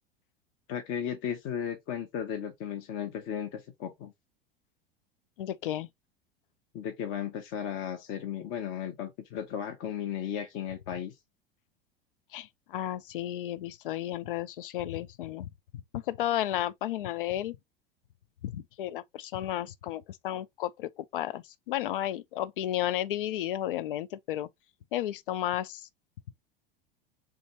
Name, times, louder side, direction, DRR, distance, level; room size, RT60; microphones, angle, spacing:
voice 1, 0.7-4.1 6.7-11.1, left 9 dB, 40° left, 0.9 m, -35 dB
voice 2, 5.4-5.9 12.3-15.5 15.9-17.6 18.4-24.5 24.9-25.9, left 12 dB, 65° left, 0.5 m, -33 dB
3.5 x 2.5 x 4.2 m
figure-of-eight pair, 80°, 29 cm